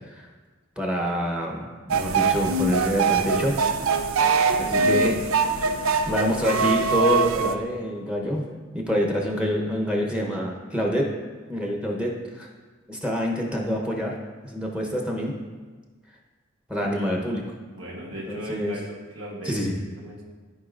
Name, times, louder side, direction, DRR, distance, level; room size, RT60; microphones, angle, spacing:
voice 1, 0.8-1.6 1.9-3.6 4.6-5.2 6.1-8.5 8.7-11.1 11.5-12.5 12.9-14.2 14.4-15.3 16.7-17.4 18.3-18.7 19.4-19.7, equal, 5° right, -1 dB, 0.9 m, -26 dB
sound 1, 1.9-7.5, right 4 dB, 85° right, 0.5 m, -23 dB
voice 2, 4.6-5.0 16.9-17.3 17.7-20.2, equal, 70° right, -4 dB, 1.3 m, -38 dB
13.5 x 4.7 x 2.5 m, 1.4 s
head